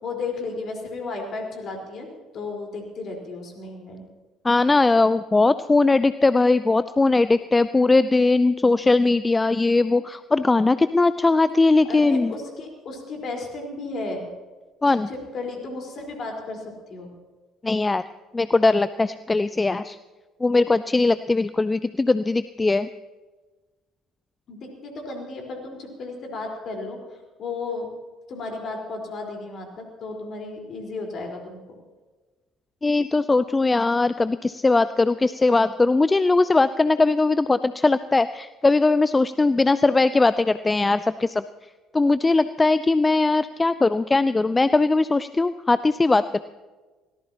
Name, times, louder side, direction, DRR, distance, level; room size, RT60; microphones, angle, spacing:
voice 1, 0.0-2.1 2.3-4.0 11.8-14.3 14.9-17.1 24.5-27.9 28.3-31.8, left 3 dB, 50° left, 2 dB, 4.5 m, -34 dB
voice 2, 4.4-12.3 14.8-15.1 17.6-18.0 18.3-20.0 20.4-22.9 32.8-41.4 41.9-46.4, left 3 dB, 20° left, 14 dB, 0.5 m, -20 dB
24.0 x 18.0 x 3.0 m, 1.3 s
figure-of-eight pair, 50°, 0 cm